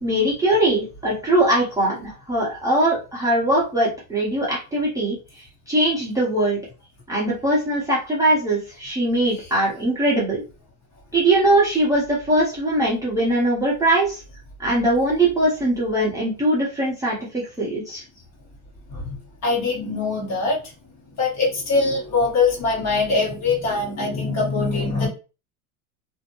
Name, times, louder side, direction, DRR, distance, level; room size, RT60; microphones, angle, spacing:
voice 1, 0.0-6.6 7.1-10.4 11.1-14.2 14.6-18.0, right 1 dB, 10° right, -6 dB, 0.8 m, -21 dB
voice 2, 18.9-20.7 21.0-25.1, left 3 dB, 35° left, -2 dB, 1.4 m, -23 dB
2.6 x 2.1 x 2.9 m, 0.32 s
supercardioid pair, 115°, 45 cm